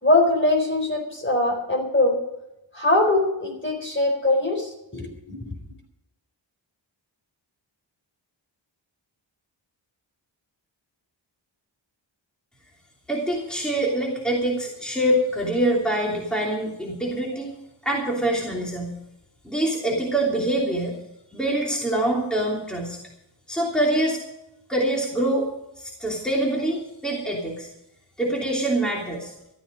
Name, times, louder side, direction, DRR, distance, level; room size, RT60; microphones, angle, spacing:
voice 1, 0.0-2.2 2.7-5.5, left 2 dB, 25° left, 2 dB, 4.1 m, -22 dB
voice 2, 13.1-17.5 17.8-18.9 19.4-20.9 21.3-23.0 23.5-24.2 24.7-25.5 25.8-27.7 28.2-29.3, right 1 dB, ahead, -3 dB, 3.0 m, -25 dB
14.0 x 13.5 x 5.2 m, 0.89 s
wide cardioid pair, 110°, 46 cm